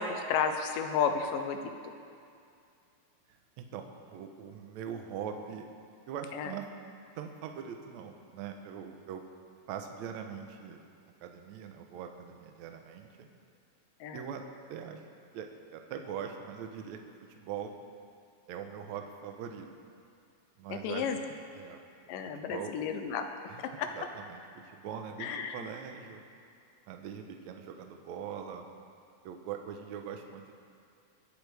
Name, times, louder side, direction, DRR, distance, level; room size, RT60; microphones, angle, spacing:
voice 1, 0.0-1.6 6.3-6.5 14.0-14.2 20.7-21.2 22.1-23.3 23.6-23.9 25.2-25.6, left 6 dB, 75° left, 6 dB, 2.2 m, -32 dB
voice 2, 3.3-5.6 6.1-6.6 7.2-9.2 9.7-10.8 11.2-13.3 14.1-14.4 14.7-15.0 15.3-17.0 17.4-17.7 18.5-19.7 20.6-21.1 21.5-21.8 22.5-22.7 23.5-23.6 23.9-24.4 24.7-26.2 26.9-28.6 29.2-30.5, right 8 dB, 85° right, 4 dB, 1.6 m, -42 dB
23.5 x 8.4 x 3.4 m, 2.4 s
omnidirectional pair, 4.4 m